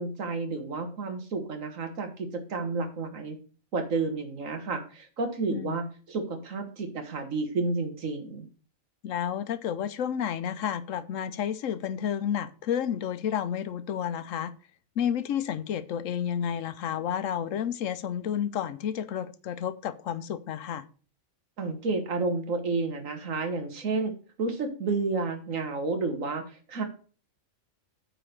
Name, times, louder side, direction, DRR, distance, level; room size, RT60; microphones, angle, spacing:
voice 1, 0.0-3.4 3.7-8.5 21.6-24.1 24.4-26.8, right 3 dB, 80° right, 1.8 m, -31 dB
voice 2, 9.0-14.5 15.0-20.8, left 9 dB, 75° left, 1.0 m, -31 dB
9.0 x 4.0 x 6.5 m
omnidirectional pair, 1.4 m